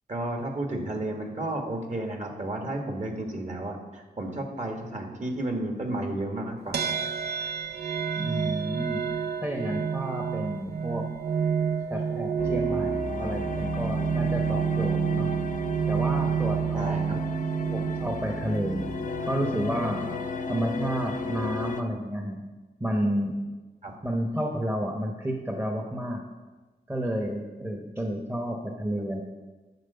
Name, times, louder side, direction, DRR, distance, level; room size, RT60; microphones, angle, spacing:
voice 1, 0.1-6.9 16.7-17.2 23.8-23.9, right 1 dB, 45° right, 2 dB, 1.5 m, -32 dB
sound 1, 6.7-20.3, right 7 dB, 70° right, 0.5 m, -29 dB
voice 2, 8.2-9.0 9.4-11.1 11.9-15.3 15.9-17.2 17.7-18.8 19.3-20.0 20.5-22.4 22.8-23.4 24.0-26.2 26.9-29.2, equal, 15° right, 2 dB, 0.9 m, -31 dB
sound 2, 12.4-21.8, left 3 dB, 50° left, 0.6 m, -34 dB
11.0 x 4.5 x 6.8 m, 1.2 s
wide cardioid pair, 110°, 17 cm